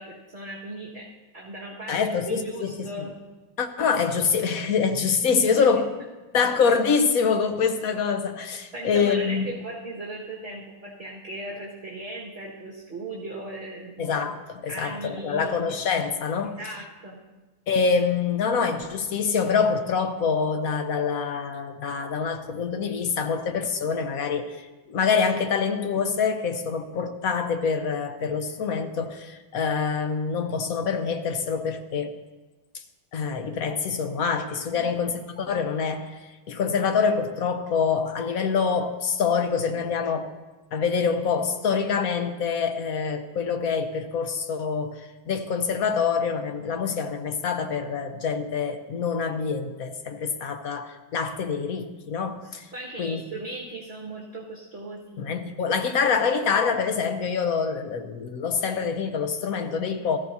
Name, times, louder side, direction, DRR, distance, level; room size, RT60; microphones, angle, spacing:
voice 1, 0.0-3.1 5.3-5.7 8.7-14.2 14.6-15.7 16.4-17.2 34.7-34.9 52.7-55.3, right 1 dB, 35° right, -4 dB, 1.8 m, -37 dB
voice 2, 1.9-2.9 3.6-5.9 6.3-9.6 14.0-16.6 17.7-24.6 24.9-32.1 33.1-36.2 36.5-40.3 40.7-52.7 53.0-53.2 55.2-60.2, left 5 dB, 55° left, 7 dB, 1.1 m, -25 dB
18.5 x 14.5 x 2.8 m, 1.2 s
omnidirectional pair, 2.1 m